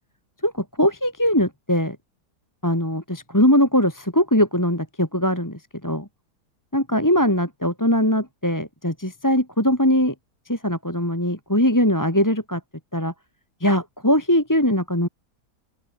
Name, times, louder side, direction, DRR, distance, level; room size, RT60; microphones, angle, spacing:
voice 1, 0.8-2.0 2.6-6.0 6.7-10.1 10.5-12.6 12.9-13.1 13.6-15.1, equal, 10° left, 3.5 m, -21 dB
open air
omnidirectional pair, 1.8 m